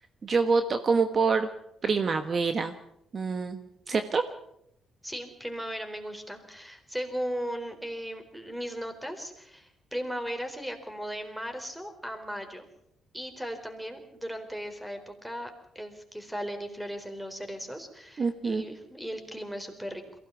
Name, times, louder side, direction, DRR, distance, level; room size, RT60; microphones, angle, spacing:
voice 1, 0.2-1.5 1.8-2.7 3.1-3.6 3.9-4.2 18.2-18.6, right 4 dB, 45° right, 8 dB, 1.4 m, -26 dB
voice 2, 5.0-12.7 13.1-20.0, equal, 5° right, 6 dB, 4.2 m, -37 dB
22.5 x 17.0 x 7.3 m, 0.77 s
cardioid pair, 90°, 0 cm